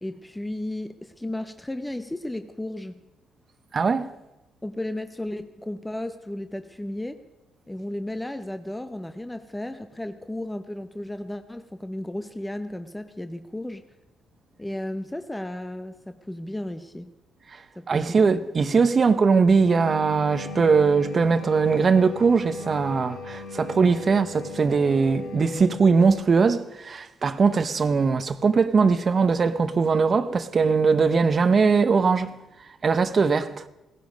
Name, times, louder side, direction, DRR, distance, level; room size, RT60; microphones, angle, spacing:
voice 1, 0.0-3.0 4.6-7.2 7.7-13.8 14.6-17.1 17.8-18.3, left 1 dB, 10° left, 0.7 m, -34 dB
voice 2, 3.7-4.1 17.5-17.6 17.9-32.3 32.8-33.7, right 5 dB, 40° right, 0.8 m, -21 dB
sound 1, 19.7-26.2, left 3 dB, 85° left, 2.0 m, -37 dB
16.5 x 15.5 x 5.2 m
cardioid pair, 90°, 0 cm